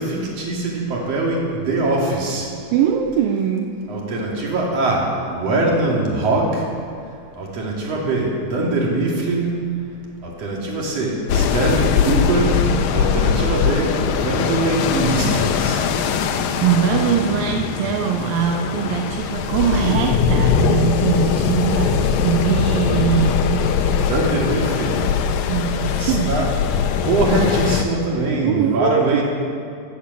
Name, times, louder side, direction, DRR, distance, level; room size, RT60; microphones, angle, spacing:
voice 1, 0.0-2.5 3.9-6.6 7.4-9.6 10.2-12.6 12.9-15.8 24.1-25.0 25.9-26.5 27.0-29.2, right 2 dB, 45° right, -2 dB, 3.4 m, -22 dB
voice 2, 2.7-3.8 16.6-24.0 25.5-26.4 28.4-29.2, right 8 dB, 80° right, 4 dB, 2.4 m, -21 dB
sound 1, 11.3-27.8, left 7 dB, 75° left, 2.4 m, -21 dB
17.5 x 8.7 x 8.3 m, 2.3 s
omnidirectional pair, 4.1 m